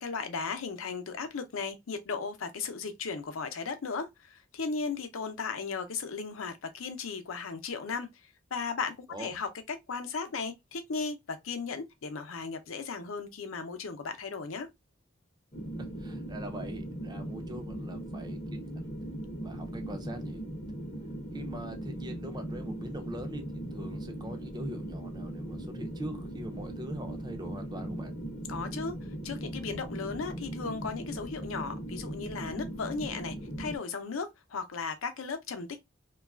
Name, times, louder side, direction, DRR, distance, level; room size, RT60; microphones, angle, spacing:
voice 1, 0.0-8.1 8.5-14.7 28.5-28.9 29.2-35.8, left 5 dB, 85° left, 0.6 m, -36 dB
sound 1, 15.5-33.8, right 1 dB, 35° left, 0.6 m, -39 dB
voice 2, 15.8-18.9 19.4-20.4 21.3-23.4 23.7-28.2, right 1 dB, 20° right, 0.5 m, -42 dB
3.0 x 2.3 x 2.3 m
head